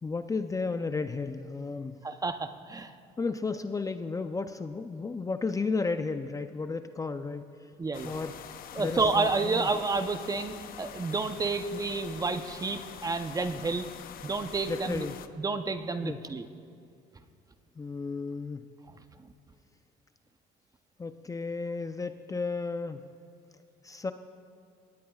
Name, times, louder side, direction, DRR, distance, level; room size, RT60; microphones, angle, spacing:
voice 1, 0.0-2.0 3.2-7.7 8.0-8.4 8.8-9.7 14.7-15.2 16.0-16.2 17.8-18.6 21.0-23.1 23.8-24.1, left 4 dB, 20° left, 9 dB, 0.5 m, -33 dB
voice 2, 2.0-2.9 7.8-8.1 8.7-13.9 14.2-15.1 15.4-16.4, right 3 dB, 20° right, 8 dB, 0.7 m, -30 dB
sound 1, 7.9-15.3, left 9 dB, 60° left, 0.7 m, -45 dB
22.5 x 19.0 x 2.4 m, 2.5 s
cardioid pair, 110°, 17 cm